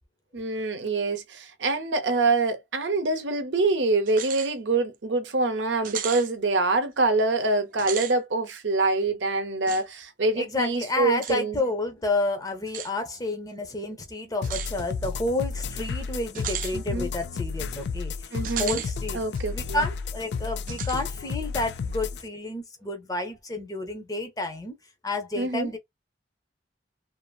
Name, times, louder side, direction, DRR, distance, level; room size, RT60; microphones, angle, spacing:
voice 1, 0.3-11.6 16.7-17.1 18.3-18.8 19.1-19.9 25.4-25.7, right 3 dB, 80° right, 0.7 m, -25 dB
sound 1, 4.1-4.5 4.9-5.0 5.8-6.3 7.7-8.1 9.7-9.8 11.2-11.4 12.7-12.9 14.4-14.7 16.3-16.7 18.4-18.9 19.3-19.4 20.7-21.0, right 10 dB, 45° right, 0.4 m, -34 dB
voice 2, 10.4-19.2 19.5-24.8 25.0-25.8, left 2 dB, 20° left, 0.6 m, -30 dB
sound 2, 14.4-22.2, left 5 dB, 70° left, 0.3 m, -32 dB
2.6 x 2.5 x 2.3 m
head